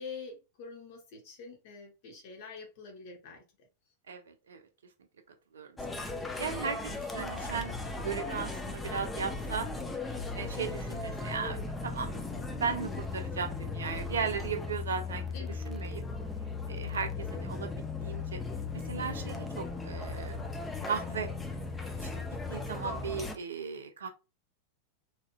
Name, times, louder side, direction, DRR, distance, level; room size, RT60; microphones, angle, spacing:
voice 1, 0.0-3.7 15.3-15.6, left 5 dB, 50° left, 2 dB, 1.0 m, -46 dB
voice 2, 4.1-4.6 5.5-6.0 6.4-9.7 10.3-15.3 15.6-16.0 16.7-18.4 18.8-20.5 20.8-21.3 21.8-24.1, right 6 dB, 65° right, 6 dB, 0.6 m, -37 dB
sound 1, 5.8-23.4, left 3 dB, 10° left, 0.5 m, -37 dB
3.0 x 2.7 x 2.3 m, 0.29 s
figure-of-eight pair, 90°, 0 cm